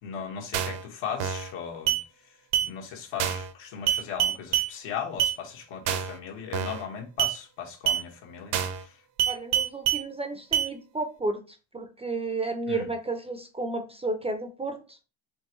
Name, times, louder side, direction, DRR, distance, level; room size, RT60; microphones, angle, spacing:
voice 1, 0.0-2.0 2.6-8.9 12.7-12.9, left 7 dB, 85° left, 1.5 m, -37 dB
sound 1, 0.5-0.8 1.2-1.5 1.9-2.0 2.5-2.7 3.2-3.5 3.9-4.7 5.2-5.4 5.9-6.2 6.5-6.8 7.2-7.4 7.9-8.0 8.5-8.8 9.2-10.0 10.5-10.7, right 9 dB, 75° right, 0.8 m, -26 dB
voice 2, 9.3-15.0, right 2 dB, 15° right, 0.4 m, -32 dB
4.4 x 3.5 x 3.0 m
cardioid pair, 120°, 44 cm